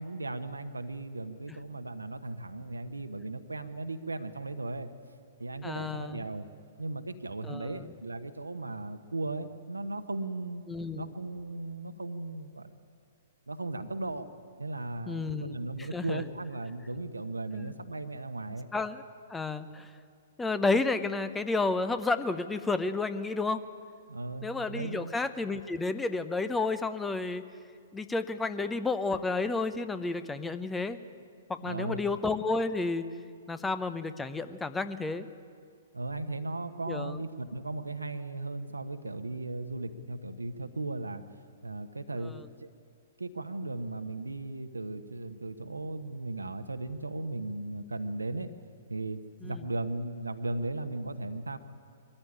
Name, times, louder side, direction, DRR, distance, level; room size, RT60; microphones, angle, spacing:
voice 1, 0.0-4.9 5.4-6.5 6.8-10.6 10.9-12.7 13.5-14.3 14.6-18.7 24.1-25.1 31.6-32.1 35.9-41.2 41.6-42.3 42.6-42.7 43.2-48.5 48.9-51.6, right 2 dB, 80° right, 8 dB, 1.2 m, -36 dB
voice 2, 5.6-6.3 7.4-7.9 10.7-11.1 15.1-16.2 17.5-17.7 18.7-19.0 19.3-19.9 20.4-23.6 24.4-27.4 27.9-31.0 31.5-33.0 33.5-35.3 36.9-37.2 42.2-42.5 49.4-49.6, left 3 dB, 10° left, 11 dB, 0.8 m, -31 dB
22.0 x 14.5 x 8.9 m, 2.2 s
figure-of-eight pair, 115°, 0 cm